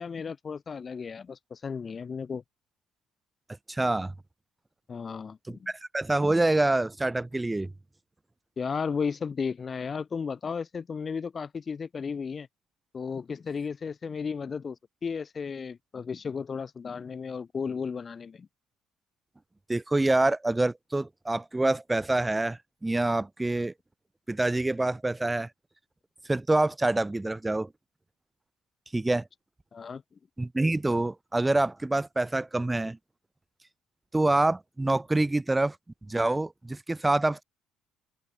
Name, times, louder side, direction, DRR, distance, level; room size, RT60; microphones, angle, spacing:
voice 1, 0.0-2.4 4.9-5.7 8.6-12.5 12.9-14.8 15.0-18.5 29.7-30.0, left 5 dB, 35° left, 1.9 m, -34 dB
voice 2, 3.7-4.1 5.5-7.7 19.7-23.7 24.3-25.5 26.3-27.7 28.9-29.3 30.4-33.0 34.1-35.8 36.1-37.4, right 2 dB, 15° right, 2.5 m, -26 dB
open air
hypercardioid pair, 50°, 0 cm